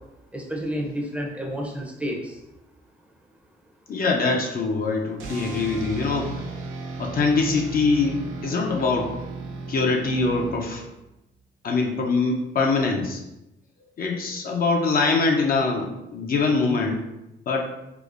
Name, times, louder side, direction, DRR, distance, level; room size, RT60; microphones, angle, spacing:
voice 1, 0.3-2.4, equal, 5° right, -1 dB, 0.6 m, -30 dB
voice 2, 3.9-6.4 7.0-9.1 9.7-10.8 11.6-13.2 14.0-17.1 17.5-17.7, left 3 dB, 50° left, 1 dB, 0.5 m, -23 dB
sound 1, 5.2-11.1, right 3 dB, 85° right, 0.6 m, -35 dB
4.8 x 2.0 x 2.5 m, 0.91 s
cardioid pair, 90°, 20 cm